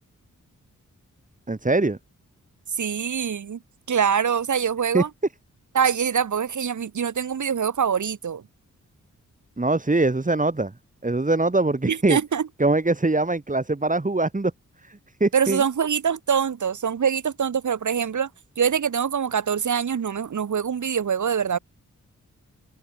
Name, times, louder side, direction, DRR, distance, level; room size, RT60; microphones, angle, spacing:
voice 1, 1.5-2.0 4.9-5.0 9.6-10.7 11.0-12.2 12.6-14.5 14.8-15.6, right 2 dB, 25° right, 6.8 m, -22 dB
voice 2, 2.8-3.6 3.9-5.1 5.7-8.4 11.9-12.5 15.3-18.3 18.6-21.6, right 7 dB, 70° right, 2.6 m, -24 dB
open air
cardioid pair, 70°, 31 cm